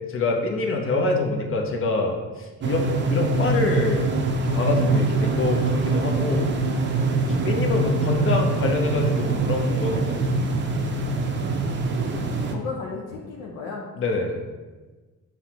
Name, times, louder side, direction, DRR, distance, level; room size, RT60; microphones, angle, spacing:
voice 1, 0.1-4.1 4.5-6.5 7.3-10.3 14.0-14.4, left 2 dB, 45° left, 2 dB, 0.6 m, -25 dB
sound 1, 2.6-12.5, right 2 dB, 40° right, 0.5 m, -24 dB
voice 2, 12.5-13.9, left 4 dB, 90° left, -3 dB, 0.5 m, -35 dB
5.7 x 2.1 x 2.8 m, 1.3 s
cardioid pair, 90°, 30 cm